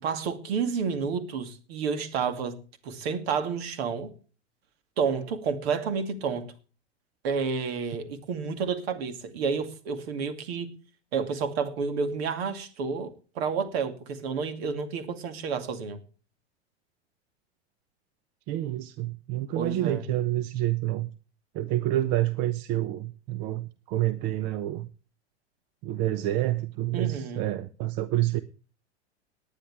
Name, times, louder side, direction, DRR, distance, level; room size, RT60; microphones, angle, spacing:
voice 1, 0.0-2.6 2.8-4.1 5.0-6.5 7.2-10.7 11.1-16.0 19.5-20.1 26.9-27.5, right 5 dB, 65° right, 2.4 m, -30 dB
voice 2, 18.5-21.1 21.5-24.9 25.8-28.4, right 14 dB, 45° right, 0.9 m, -28 dB
19.0 x 10.0 x 3.4 m
hypercardioid pair, 95°, 33 cm